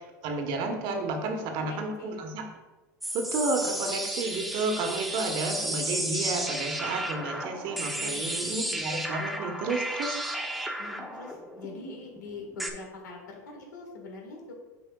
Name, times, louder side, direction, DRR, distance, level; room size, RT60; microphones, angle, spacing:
voice 1, 0.2-2.4 3.1-10.2, right 3 dB, 55° right, 4 dB, 1.1 m, -31 dB
voice 2, 1.5-2.2 8.0-8.7 10.8-14.5, left 3 dB, 85° left, 1 dB, 1.6 m, -43 dB
sound 1, 3.0-12.7, right 1 dB, ahead, 0.8 m, -33 dB
8.1 x 5.2 x 2.3 m, 1.2 s
hypercardioid pair, 100°, 9 cm